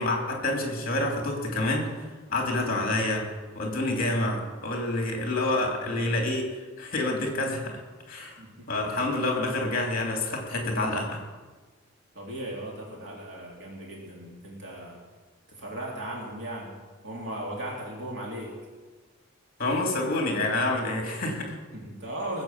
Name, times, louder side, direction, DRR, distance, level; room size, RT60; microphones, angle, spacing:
voice 1, 0.0-1.9 2.3-3.3 3.5-7.8 8.1-8.4 8.7-11.2 19.6-21.6, left 2 dB, 40° left, 2 dB, 3.0 m, -28 dB
voice 2, 5.7-6.0 8.4-8.7 12.1-15.0 15.5-16.8 17.0-18.6 21.7-22.4, right 1 dB, 60° right, -3 dB, 3.0 m, -37 dB
19.5 x 8.1 x 7.5 m, 1.3 s
head